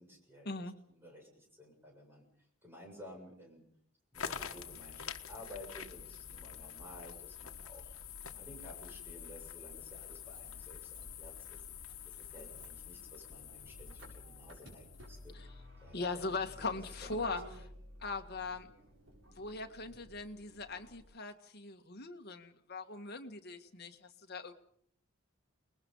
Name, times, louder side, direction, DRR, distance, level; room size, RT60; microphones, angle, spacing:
voice 1, 0.0-2.2 2.6-3.6 4.1-7.9 8.3-11.6 12.0-15.4 15.8-17.3 17.6-17.7, left 1 dB, 10° right, 1 dB, 7.0 m, -54 dB
sound 1, 4.1-15.3, left 7 dB, 80° left, 1.4 m, -47 dB
Motor vehicle (road), 9.9-21.0, equal, 65° right, 7.6 m, -54 dB
voice 2, 15.9-17.4 18.0-18.7 19.4-24.5, left 3 dB, 50° left, 6 dB, 1.8 m, -40 dB
29.5 x 20.5 x 5.6 m, 0.63 s
head